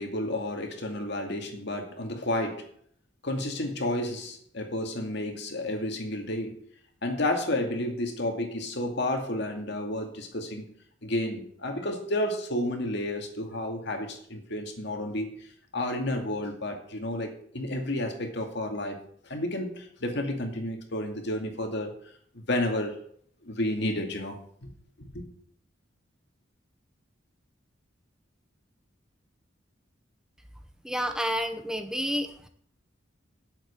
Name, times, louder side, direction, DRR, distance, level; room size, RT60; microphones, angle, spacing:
voice 1, 0.0-2.7 3.2-6.6 7.0-10.7 11.0-15.3 15.7-19.0 19.2-21.9 22.3-23.0 23.4-24.7 25.1-25.2, left 1 dB, 65° left, 2.3 m, -31 dB
voice 2, 30.8-32.5, equal, 5° right, 0.8 m, -30 dB
8.5 x 7.5 x 8.4 m
head